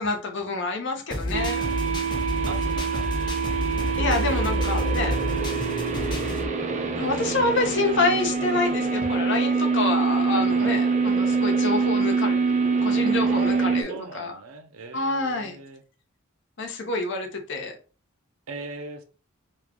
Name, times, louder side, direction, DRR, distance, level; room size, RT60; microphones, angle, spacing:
voice 1, 0.0-1.7 4.0-5.2 7.0-12.5 12.8-14.3 14.9-15.5 16.6-17.8, left 2 dB, 55° left, 4 dB, 0.8 m, -27 dB
sound 1, 1.1-6.5, left 1 dB, 20° left, 0.5 m, -29 dB
sound 2, 1.3-13.8, right 5 dB, 35° right, 0.4 m, -25 dB
voice 2, 2.5-3.1 5.0-5.5 10.3-10.8 13.3-15.8 18.5-19.0, right 3 dB, 75° right, 7 dB, 0.6 m, -39 dB
sound 3, 4.0-14.0, right 2 dB, 15° right, 0.8 m, -36 dB
3.1 x 2.3 x 3.6 m, 0.36 s
head